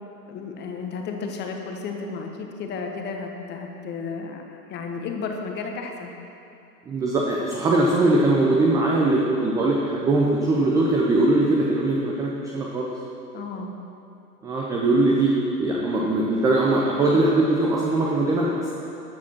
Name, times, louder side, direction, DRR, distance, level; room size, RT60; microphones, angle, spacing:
voice 1, 0.3-6.1 13.3-13.7, left 4 dB, 20° left, 3 dB, 1.2 m, -33 dB
voice 2, 6.9-12.9 14.4-18.7, right 2 dB, 10° right, -3 dB, 0.5 m, -21 dB
13.0 x 7.2 x 5.9 m, 2.7 s
figure-of-eight pair, 110°, 48 cm